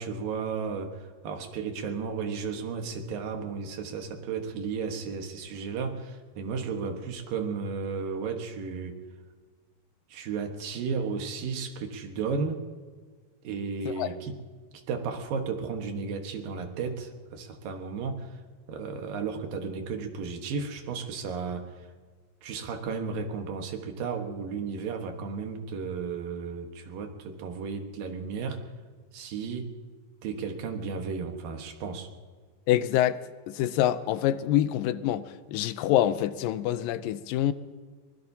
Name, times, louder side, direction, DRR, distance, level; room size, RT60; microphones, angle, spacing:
voice 1, 0.0-9.0 10.1-12.6 13.4-14.4 14.9-18.4 18.7-21.9 22.4-28.6 29.1-29.7 30.2-32.1, right 5 dB, 85° right, 3.1 m, -34 dB
voice 2, 32.7-33.2 33.5-37.5, left 12 dB, 85° left, 2.3 m, -26 dB
24.0 x 21.0 x 2.8 m
omnidirectional pair, 3.9 m